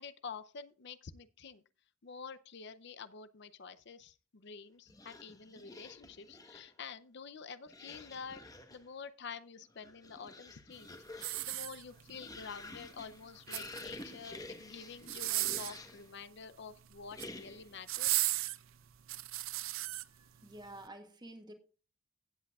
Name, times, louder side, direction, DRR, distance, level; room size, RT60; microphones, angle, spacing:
voice 1, 0.0-1.6 2.0-8.4 8.7-18.2, left 5 dB, 55° left, 0.6 m, -48 dB
sound 1, 4.9-6.8 7.7-8.9 9.6-16.1 17.1-17.8, left 2 dB, 20° left, 1.1 m, -50 dB
sound 2, 11.1-12.2 13.3-14.1 15.0-15.8 16.9-17.3 17.9-20.0 20.6-20.8, right 17 dB, 80° right, 0.6 m, -35 dB
voice 2, 19.8-21.5, right 1 dB, 20° right, 1.7 m, -51 dB
16.0 x 8.2 x 2.4 m
head